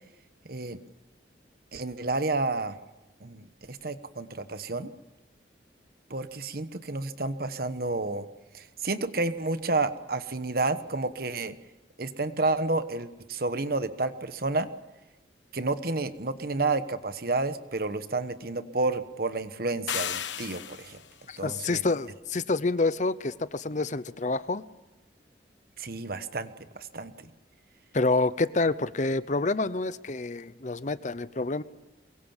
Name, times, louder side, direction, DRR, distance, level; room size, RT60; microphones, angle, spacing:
voice 1, 0.4-0.8 1.7-2.8 3.2-4.9 6.1-8.3 8.5-11.5 12.0-14.7 15.5-21.0 21.4-21.8 25.8-27.1, right 3 dB, 55° right, 11 dB, 1.2 m, -30 dB
sound 1, 19.9-21.1, left 9 dB, 90° left, 1.1 m, -34 dB
voice 2, 21.3-24.6 27.9-31.6, left 3 dB, 40° left, 15 dB, 0.7 m, -28 dB
23.5 x 22.5 x 7.3 m, 1.0 s
head